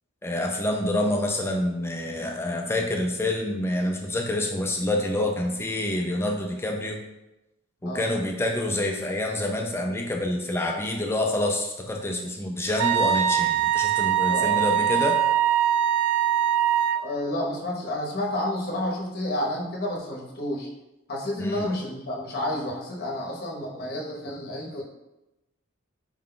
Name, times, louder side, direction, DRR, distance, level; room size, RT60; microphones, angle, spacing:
voice 1, 0.2-7.0 7.8-15.2 21.4-21.7, left 1 dB, 10° left, 1 dB, 0.3 m, -27 dB
Wind instrument woodwind instrument, 12.8-17.1, right 10 dB, 90° right, 0.3 m, -22 dB
voice 2, 14.3-14.6 17.0-20.7 21.1-24.8, left 1 dB, 45° left, -2 dB, 0.8 m, -30 dB
4.7 x 2.2 x 3.7 m, 0.96 s
head